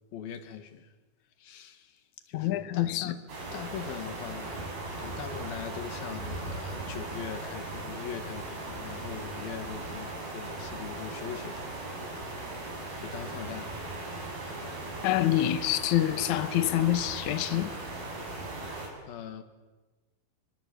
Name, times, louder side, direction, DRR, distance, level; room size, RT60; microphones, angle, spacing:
voice 1, 0.1-0.9 1.4-3.2 3.5-4.7 5.0-12.6 13.0-13.9 19.1-19.4, left 8 dB, 90° left, 3.7 m, -41 dB
voice 2, 2.3-3.1 15.0-17.7, left 13 dB, 65° left, 2.4 m, -26 dB
sound 1, 3.3-18.9, right 2 dB, 85° right, 7.9 m, -38 dB
27.0 x 24.5 x 8.5 m
omnidirectional pair, 4.1 m